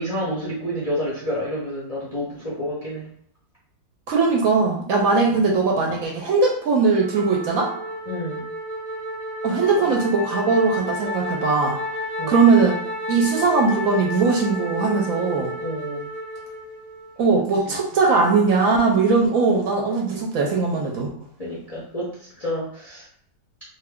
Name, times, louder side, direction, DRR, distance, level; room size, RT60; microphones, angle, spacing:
voice 1, 0.0-3.1 5.3-5.4 8.1-8.5 9.8-9.9 12.2-12.4 15.5-16.1 17.3-17.8 20.1-20.2 21.4-23.1, equal, 40° left, -7 dB, 0.5 m, -30 dB
voice 2, 4.1-7.7 9.4-11.8 12.3-12.8 13.1-15.5 17.2-21.1, right 4 dB, 70° right, -1 dB, 0.9 m, -20 dB
Wind instrument woodwind instrument, 6.8-17.2, left 1 dB, ahead, 0.8 m, -31 dB
2.6 x 2.3 x 3.4 m, 0.66 s
omnidirectional pair, 1.7 m